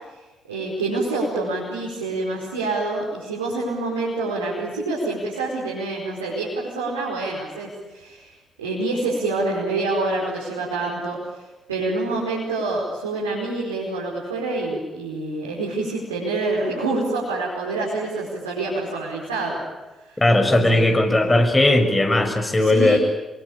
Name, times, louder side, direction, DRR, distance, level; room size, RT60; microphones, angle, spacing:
voice 1, 0.5-19.6 20.0-20.2 20.7-20.9 22.6-23.0, right 2 dB, 90° right, -5 dB, 5.0 m, -27 dB
voice 2, 20.2-23.0, left 1 dB, 25° left, 5 dB, 6.7 m, -17 dB
27.0 x 23.5 x 8.8 m, 1.1 s
hypercardioid pair, 40°, 0 cm